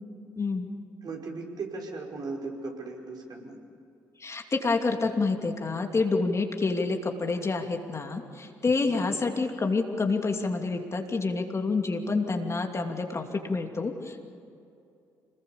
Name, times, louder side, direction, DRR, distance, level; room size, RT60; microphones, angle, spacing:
voice 1, 0.4-0.7 4.2-14.2, left 3 dB, 35° left, 3 dB, 2.7 m, -28 dB
voice 2, 1.0-3.6 8.9-9.1, right 3 dB, 50° right, 0 dB, 5.3 m, -37 dB
26.5 x 20.5 x 7.2 m, 2.6 s
hypercardioid pair, 45°, 8 cm